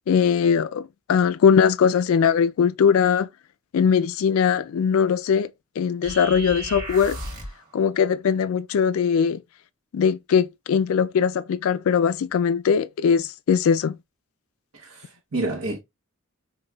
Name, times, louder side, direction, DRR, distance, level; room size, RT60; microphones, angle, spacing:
voice 1, 0.1-3.3 3.7-5.5 5.8-7.2 7.7-9.4 9.9-14.0, left 7 dB, 65° left, 0.3 m, -20 dB
sound 1, 6.0-7.6, right 1 dB, 40° right, 1.2 m, -34 dB
voice 2, 14.7-15.8, right 2 dB, 60° right, 0.8 m, -29 dB
5.2 x 2.3 x 2.2 m
head